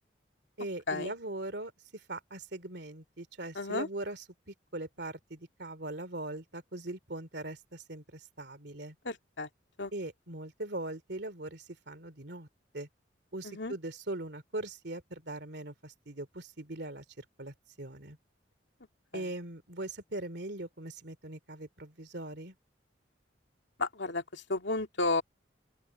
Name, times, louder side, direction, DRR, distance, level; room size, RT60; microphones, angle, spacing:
voice 1, 0.6-9.0 9.9-12.5 12.7-12.9 13.3-18.2 19.1-22.5, right 2 dB, 65° right, 2.8 m, -41 dB
voice 2, 3.6-3.9 9.1-9.5 9.8-9.9 13.4-13.7 19.1-19.2 23.8-25.2, left 3 dB, 70° left, 2.2 m, -32 dB
open air
head